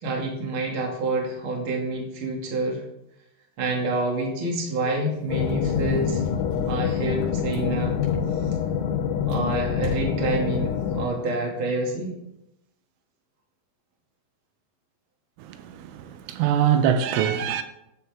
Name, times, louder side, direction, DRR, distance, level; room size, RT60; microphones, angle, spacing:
voice 1, 0.0-2.8 3.6-6.2 6.7-8.0 9.3-12.1, right 2 dB, 35° right, 2.2 m, -27 dB
sound 1, 4.8-8.7 9.2-10.7 11.0-11.4, left 3 dB, 60° left, 4.5 m, -41 dB
sound 2, 5.3-11.1, left 8 dB, 80° left, 3.3 m, -26 dB
voice 2, 15.4-17.6, right 9 dB, 85° right, 3.2 m, -23 dB
12.5 x 10.0 x 3.6 m
omnidirectional pair, 5.6 m